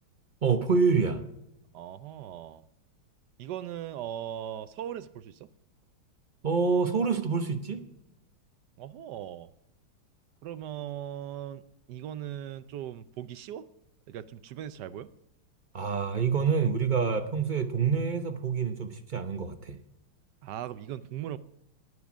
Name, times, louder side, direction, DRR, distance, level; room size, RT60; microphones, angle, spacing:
voice 1, 0.4-1.2 6.4-7.8 15.7-19.8, right 5 dB, 50° right, 0.5 m, -27 dB
voice 2, 1.7-2.6 3.4-5.5 8.8-9.5 10.4-11.6 11.9-13.7 14.1-15.1 20.4-21.4, right 11 dB, 70° right, 1.0 m, -39 dB
19.0 x 7.9 x 6.1 m
omnidirectional pair, 2.3 m